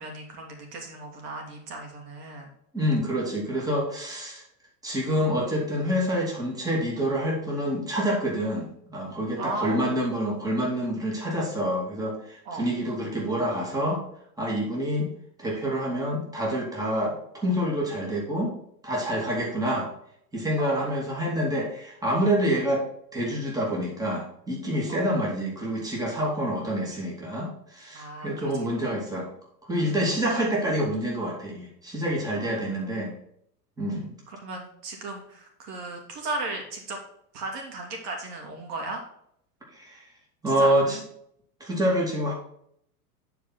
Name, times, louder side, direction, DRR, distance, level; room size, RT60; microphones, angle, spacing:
voice 1, 0.0-2.5 9.4-9.9 12.4-12.7 20.6-20.9 24.9-25.1 27.9-28.5 32.4-32.5 32.9-33.0 34.3-37.0 37.3-39.0 40.5-41.0, right 2 dB, 75° right, 2 dB, 2.7 m, -36 dB
voice 2, 2.7-4.4 4.8-14.0 14.4-15.1 15.4-18.5 18.8-19.9 20.3-22.9 23.1-29.3 29.7-33.1 33.8-34.1 39.7-40.0 40.4-41.0 41.6-42.3, equal, 10° right, -3 dB, 2.4 m, -27 dB
9.8 x 4.7 x 4.2 m, 0.69 s
supercardioid pair, 130°, 47 cm